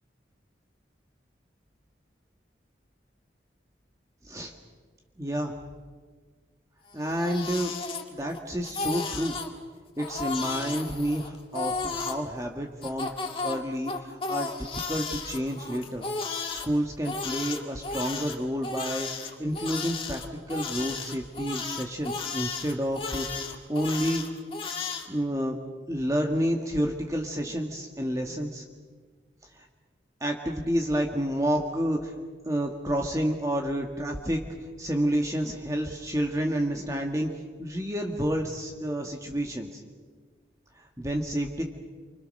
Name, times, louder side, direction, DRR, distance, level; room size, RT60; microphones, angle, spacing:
voice 1, 5.2-5.6 6.9-7.7 8.1-9.4 10.0-13.1 13.4-16.1 16.5-23.3 23.7-24.2 25.1-25.6 25.9-28.6 29.5-29.7 30.2-32.1 32.4-34.4 34.8-39.8 40.7-41.6, equal, 20° right, 2 dB, 1.6 m, -29 dB
Crying sobbing, 6.9-8.4 8.6-9.5 10.0-12.2 12.8-16.7 17.0-25.1, left 4 dB, 30° left, 2.0 m, -34 dB
28.5 x 25.5 x 6.5 m, 1.5 s
head